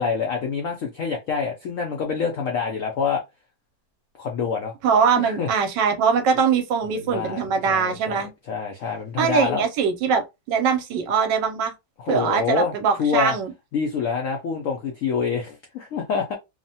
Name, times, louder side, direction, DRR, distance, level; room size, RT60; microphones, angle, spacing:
voice 1, 0.0-3.2 4.2-4.7 5.2-5.5 6.9-9.6 12.0-12.7 13.0-13.4 13.7-16.3, left 6 dB, 75° left, 0.7 m, -26 dB
voice 2, 4.8-8.3 9.2-11.7 12.1-13.5, right 6 dB, 75° right, 1.2 m, -22 dB
3.0 x 2.1 x 2.7 m
omnidirectional pair, 2.0 m